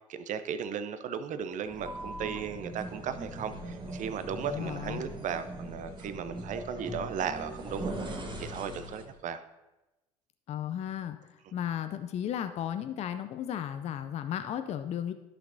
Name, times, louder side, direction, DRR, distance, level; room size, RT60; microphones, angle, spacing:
voice 1, 0.1-9.4, right 7 dB, 40° right, 11 dB, 0.7 m, -36 dB
sound 1, 1.7-9.2, right 1 dB, 25° right, 1.3 m, -40 dB
voice 2, 4.4-5.0 10.5-15.1, left 10 dB, 35° left, 9 dB, 0.5 m, -35 dB
13.5 x 5.9 x 2.7 m, 1.0 s
figure-of-eight pair, 65°, 19 cm